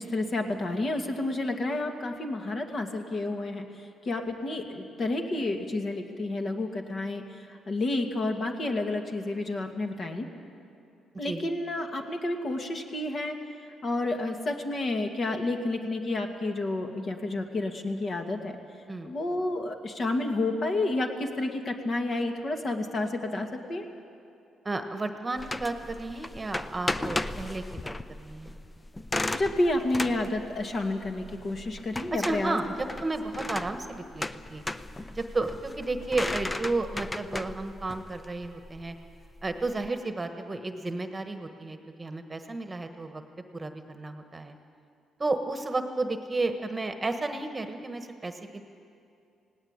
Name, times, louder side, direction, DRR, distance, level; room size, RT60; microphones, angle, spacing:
voice 1, 0.0-3.7 4.0-7.2 7.5-10.3 11.2-13.4 13.8-18.6 19.0-23.9 29.3-32.6, left 2 dB, 45° left, 3 dB, 2.1 m, -30 dB
voice 2, 24.6-28.5 32.1-34.6 35.1-38.9 39.4-43.2 43.5-44.6 45.2-48.6, right 2 dB, 20° right, 7 dB, 1.3 m, -32 dB
sound 1, 25.4-39.9, left 2 dB, 20° left, 0.6 m, -36 dB
18.5 x 17.5 x 8.9 m, 2.5 s
cardioid pair, 90°, 0 cm